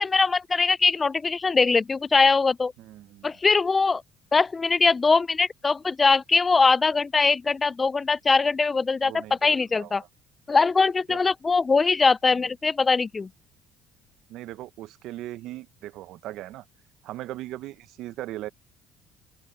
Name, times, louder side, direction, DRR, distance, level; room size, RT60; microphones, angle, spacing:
voice 1, 0.0-2.7 3.2-4.0 4.3-10.0 10.5-13.3, left 4 dB, 25° left, 0.3 m, -22 dB
voice 2, 2.8-3.3 9.0-9.9 11.1-11.2 12.3-12.4 14.3-16.7 17.0-18.5, right 15 dB, 75° right, 0.6 m, -39 dB
open air
cardioid pair, 95°, 0 cm